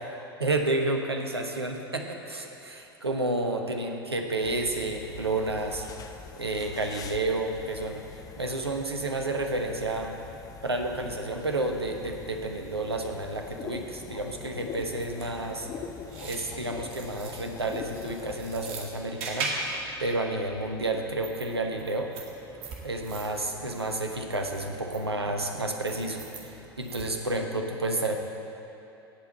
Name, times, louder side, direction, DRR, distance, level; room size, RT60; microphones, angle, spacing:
voice 1, 0.4-5.9 6.4-8.1 8.4-10.1 10.6-15.7 16.2-22.1 22.8-28.2, right 2 dB, 85° right, 3 dB, 1.2 m, -30 dB
sound 1, 4.4-18.7, left 6 dB, 30° left, 0.7 m, -44 dB
sound 2, 14.7-27.4, right 3 dB, 45° right, 2.0 m, -41 dB
17.0 x 5.9 x 7.9 m, 2.8 s
figure-of-eight pair, 80°, 13 cm